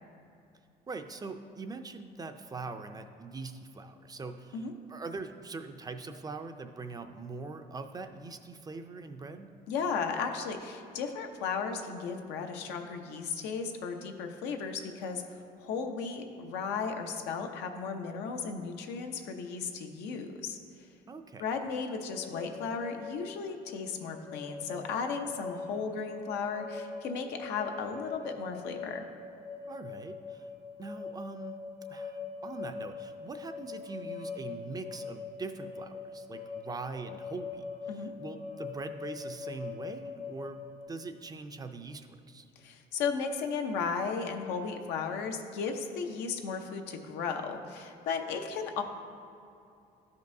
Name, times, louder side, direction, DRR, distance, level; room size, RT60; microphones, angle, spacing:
voice 1, 0.9-9.5 21.1-21.5 29.7-30.5 30.8-31.6 31.9-42.5, right 3 dB, 20° right, 7 dB, 0.4 m, -42 dB
voice 2, 9.7-15.2 15.6-20.6 21.4-29.1 37.9-38.1 42.6-48.8, left 5 dB, 85° left, 4 dB, 0.7 m, -35 dB
sound 1, 22.1-40.9, left 5 dB, 70° left, 1.3 m, -42 dB
12.5 x 5.3 x 2.7 m, 2.6 s
cardioid pair, 110°, 17 cm